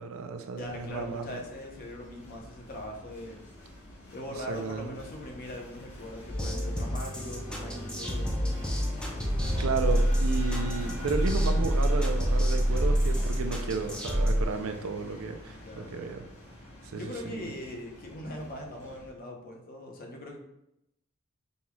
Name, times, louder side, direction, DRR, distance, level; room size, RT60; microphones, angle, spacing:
voice 1, 0.0-1.4 4.5-4.9 8.9-9.0 9.6-16.2 16.8-17.4, right 4 dB, 70° right, 6 dB, 0.4 m, -33 dB
sound 1, 0.5-19.1, left 1 dB, 65° left, 1.3 m, -47 dB
voice 2, 0.5-3.4 4.1-8.9 15.5-16.1 16.9-20.4, left 1 dB, 40° left, 1 dB, 0.7 m, -41 dB
sound 2, 6.3-14.4, equal, 5° left, 0.5 m, -27 dB
sound 3, 9.2-12.6, equal, 35° right, 0.8 m, -47 dB
5.2 x 2.3 x 3.0 m, 0.84 s
head